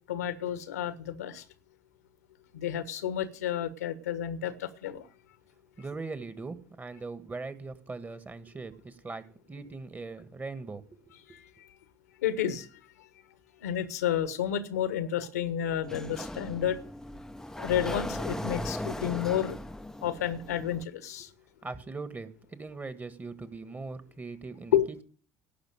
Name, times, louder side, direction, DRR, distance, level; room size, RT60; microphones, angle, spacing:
voice 1, 0.1-1.4 2.5-5.1 11.3-11.5 12.2-12.7 13.6-16.8 17.6-19.6 20.0-21.3 24.7-24.9, left 10 dB, 75° left, 12 dB, 1.3 m, -30 dB
voice 2, 5.8-10.8 21.6-24.8, right 3 dB, 20° right, 12 dB, 1.7 m, -40 dB
Sliding door, 15.8-20.8, left 1 dB, 5° left, 0.7 m, -38 dB
17.5 x 6.0 x 9.1 m, 0.42 s
figure-of-eight pair, 60°, 9 cm